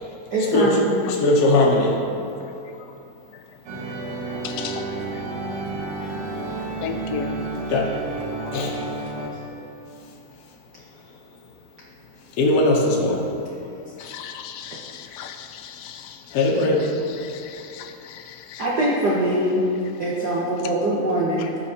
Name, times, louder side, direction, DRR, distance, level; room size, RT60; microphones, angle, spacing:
voice 1, 0.3-0.9 14.7-14.8 18.6-19.6 20.0-21.6, right 1 dB, 70° right, -6 dB, 0.9 m, -23 dB
voice 2, 1.1-2.0 7.7-7.9 8.5-8.8 12.4-13.3 16.3-16.8, left 2 dB, 70° left, -2 dB, 1.7 m, -19 dB
sound 1, 3.7-9.3, right 3 dB, 90° right, 2.5 m, -31 dB
voice 3, 4.4-5.2 6.0-6.1 6.8-7.4 8.4-8.5 9.6-9.7 14.0-16.4 17.2-18.7 21.4-21.5, left 8 dB, 85° left, 6 dB, 1.4 m, -36 dB
16.0 x 5.8 x 2.8 m, 2.8 s
omnidirectional pair, 3.4 m